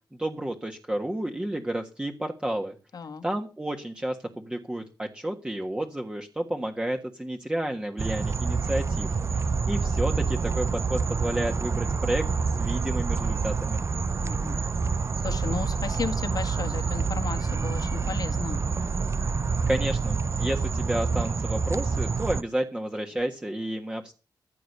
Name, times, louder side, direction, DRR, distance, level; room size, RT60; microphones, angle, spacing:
voice 1, 0.1-2.7 3.2-13.8 19.7-24.1, right 1 dB, 15° right, 3 dB, 1.5 m, -31 dB
voice 2, 2.9-3.2 14.2-14.6 15.2-18.6, left 5 dB, 60° left, 8 dB, 1.8 m, -34 dB
sound 1, 8.0-22.4, right 5 dB, 40° right, 0.6 m, -27 dB
14.5 x 7.8 x 6.7 m, 0.34 s
cardioid pair, 80°, 7 cm